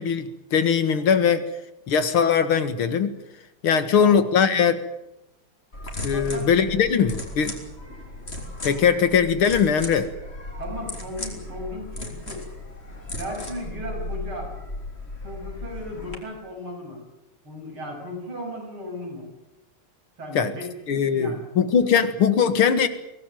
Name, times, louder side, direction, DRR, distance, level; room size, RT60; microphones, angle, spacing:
voice 1, 0.0-1.4 1.9-3.1 3.6-4.8 6.0-7.6 8.6-10.1 20.3-20.5 20.9-22.9, left 7 dB, 80° left, 11 dB, 2.5 m, -20 dB
sound 1, 5.7-16.1, left 2 dB, 30° left, 4.0 m, -36 dB
voice 2, 6.1-6.4 10.6-12.5 13.2-14.5 15.2-17.0 17.4-19.3 20.2-21.4, left 1 dB, 80° right, 1 dB, 8.6 m, -36 dB
24.0 x 18.0 x 9.2 m, 0.91 s
omnidirectional pair, 2.3 m